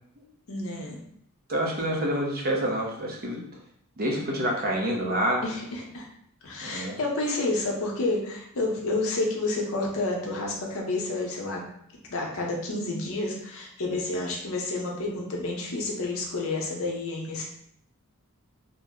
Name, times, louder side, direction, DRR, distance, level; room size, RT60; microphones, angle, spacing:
voice 1, 0.5-1.0 5.4-6.0 6.4-11.6 12.1-17.5, left 2 dB, 65° left, -1 dB, 0.7 m, -30 dB
voice 2, 1.5-3.4 4.0-5.4 6.6-7.0, equal, 45° right, -1 dB, 0.6 m, -27 dB
2.9 x 2.0 x 3.5 m, 0.70 s
head